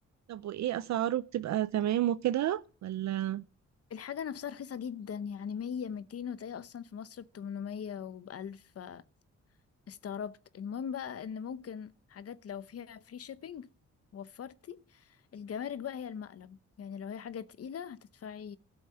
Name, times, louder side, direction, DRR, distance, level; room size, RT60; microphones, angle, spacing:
voice 1, 0.3-3.4, right 12 dB, 70° right, 0.5 m, -31 dB
voice 2, 3.9-9.0 9.9-13.7 14.1-18.6, left 7 dB, 55° left, 0.9 m, -40 dB
13.0 x 7.2 x 8.5 m
cardioid pair, 85°, 29 cm